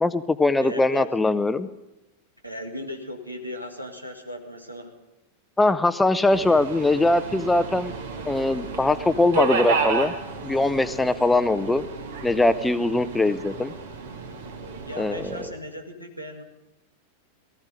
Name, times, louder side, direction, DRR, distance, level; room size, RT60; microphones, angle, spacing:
voice 1, 0.0-1.7 5.6-7.9 8.3-10.1 10.4-11.8 12.2-13.7 15.0-15.3, left 2 dB, 10° left, 13 dB, 0.7 m, -21 dB
voice 2, 0.6-1.1 2.4-4.9 14.8-16.4, equal, 90° right, 4 dB, 1.9 m, -36 dB
Subway metro underground, 6.3-15.5, right 4 dB, 60° right, 1.8 m, -31 dB
18.5 x 14.5 x 5.1 m, 0.94 s
figure-of-eight pair, 90°, 0 cm